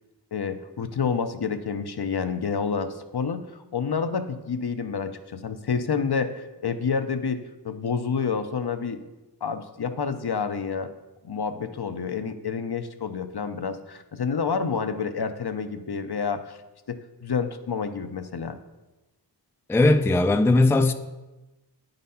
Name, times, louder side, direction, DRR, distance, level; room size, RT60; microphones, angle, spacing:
voice 1, 0.3-9.0 9.4-10.9 11.2-16.6 16.9-18.6, left 5 dB, 65° left, 0.6 m, -29 dB
voice 2, 19.7-20.9, left 2 dB, 5° left, 0.4 m, -18 dB
9.2 x 4.0 x 5.5 m
wide cardioid pair, 40°, 42 cm